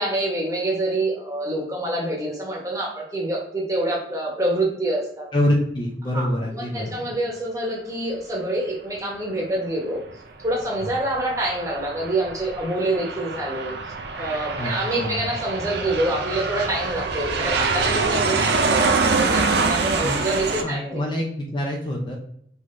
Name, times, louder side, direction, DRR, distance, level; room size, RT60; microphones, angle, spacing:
voice 1, 0.0-5.3 6.1-10.0 10.4-13.7 14.2-21.0, right 1 dB, 20° right, -2 dB, 1.0 m, -26 dB
voice 2, 5.3-6.9 14.6-15.3 20.0-20.2 20.6-22.1, left 1 dB, 25° left, -1 dB, 0.5 m, -25 dB
Aircraft, 10.4-20.6, right 4 dB, 70° right, 0.5 m, -25 dB
5.5 x 3.1 x 2.5 m, 0.68 s
head